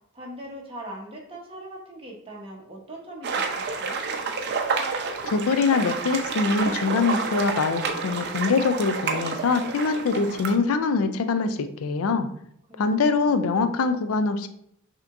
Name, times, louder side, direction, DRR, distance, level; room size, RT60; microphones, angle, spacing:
voice 1, 0.1-4.0 12.7-13.4, right 1 dB, 25° right, -1 dB, 1.0 m, -41 dB
sound 1, 3.2-10.6, right 4 dB, 55° right, 0.5 m, -29 dB
voice 2, 5.2-12.3 12.8-14.5, left 4 dB, 80° left, 9 dB, 0.4 m, -23 dB
5.7 x 2.9 x 2.5 m, 0.72 s
head